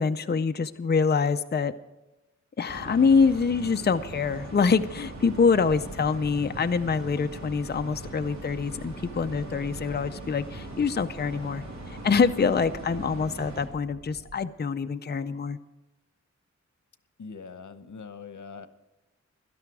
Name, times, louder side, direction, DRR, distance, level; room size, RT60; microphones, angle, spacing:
voice 1, 0.0-1.7 2.6-15.6, left 5 dB, 35° left, 9 dB, 0.5 m, -25 dB
sound 1, 2.7-13.7, right 2 dB, 70° right, 3.4 m, -40 dB
sound 2, 6.7-14.4, right 2 dB, 40° right, 1.0 m, -49 dB
voice 2, 17.2-18.7, left 5 dB, 80° left, 11 dB, 0.9 m, -42 dB
17.0 x 12.5 x 4.7 m, 1.0 s
wide cardioid pair, 90°, 29 cm